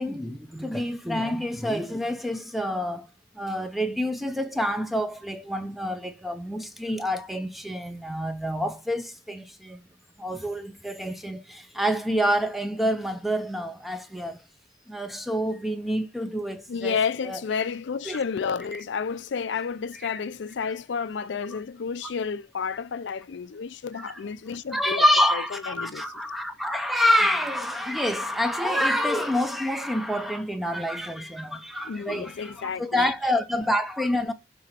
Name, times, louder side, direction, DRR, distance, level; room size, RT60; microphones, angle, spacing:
voice 1, 0.0-3.1 3.4-9.8 10.2-14.4 14.9-17.0 17.3-17.4 18.1-18.2 23.9-24.2 24.7-34.3, equal, ahead, 0.6 m, -27 dB
voice 2, 16.7-26.1 31.8-33.1, left 6 dB, 75° left, 0.4 m, -31 dB
5.9 x 3.8 x 4.4 m
head